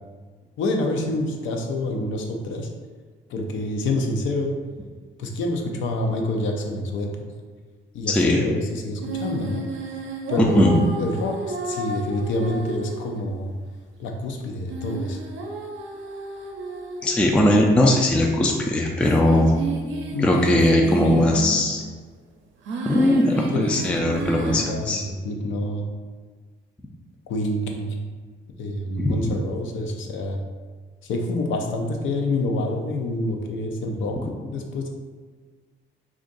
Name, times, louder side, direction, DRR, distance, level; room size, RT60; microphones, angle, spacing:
voice 1, 0.6-2.7 3.3-4.5 5.2-7.1 7.9-9.6 10.3-13.5 14.0-15.2 20.1-20.5 21.0-21.2 23.5-25.9 27.3-28.0 28.6-30.4 31.0-34.1 34.5-34.9, left 1 dB, 75° left, 2 dB, 0.5 m, -27 dB
voice 2, 8.1-8.5 10.4-10.8 17.0-19.5 20.2-21.8 22.9-25.0 29.0-29.2 34.2-34.3, left 1 dB, 5° left, 0 dB, 0.3 m, -19 dB
sound 1, 9.0-13.2 14.7-17.4 18.2-18.3 19.0-21.8 22.7-24.7, right 2 dB, 70° right, 0.6 m, -32 dB
2.6 x 2.4 x 3.9 m, 1.5 s
cardioid pair, 90°, 20 cm